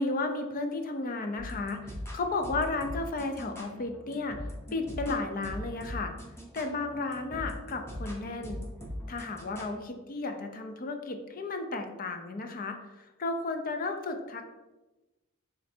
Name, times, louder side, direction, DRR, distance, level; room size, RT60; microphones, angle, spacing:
voice 1, 0.0-6.1 6.5-8.6 9.1-14.5, left 3 dB, 40° left, 6 dB, 0.5 m, -33 dB
sound 1, 1.4-9.8, left 1 dB, 10° left, 0.8 m, -41 dB
3.8 x 3.2 x 4.3 m, 1.1 s
head